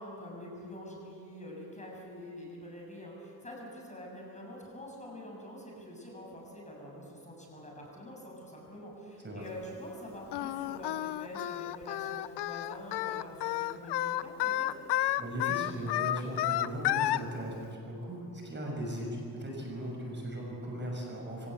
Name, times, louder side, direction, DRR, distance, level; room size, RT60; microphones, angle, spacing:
voice 1, 0.0-14.7, left 1 dB, 20° left, -2 dB, 7.0 m, -46 dB
Singing, 10.3-17.2, left 15 dB, 85° left, 0.7 m, -31 dB
voice 2, 15.2-21.5, equal, 30° right, 0 dB, 6.4 m, -38 dB
25.0 x 17.5 x 8.2 m, 2.6 s
cardioid pair, 95°, 39 cm